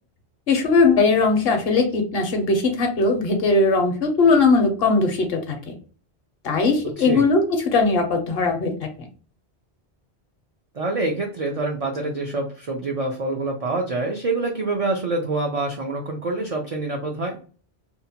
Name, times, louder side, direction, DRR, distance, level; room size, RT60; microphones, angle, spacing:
voice 1, 0.5-5.7 6.4-8.7, left 3 dB, 65° left, 5 dB, 0.8 m, -19 dB
voice 2, 10.7-17.4, right 2 dB, 65° right, 0 dB, 0.3 m, -26 dB
2.7 x 2.0 x 2.7 m, 0.39 s
omnidirectional pair, 1.1 m